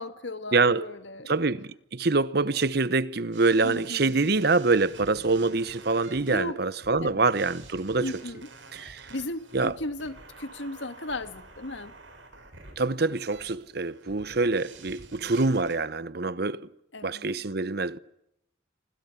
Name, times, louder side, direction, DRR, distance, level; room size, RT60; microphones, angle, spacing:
voice 1, 0.0-1.3 3.6-4.3 6.3-6.6 7.0-7.2 8.0-8.5 9.1-11.9 16.9-17.3, left 2 dB, 70° left, 1.9 m, -36 dB
voice 2, 0.5-0.9 1.3-8.1 8.7-9.1 9.5-9.8 12.8-16.7 17.0-18.0, right 3 dB, 55° right, 1.0 m, -25 dB
sound 1, 3.3-15.7, right 3 dB, 90° right, 7.9 m, -49 dB
27.5 x 25.5 x 7.3 m
head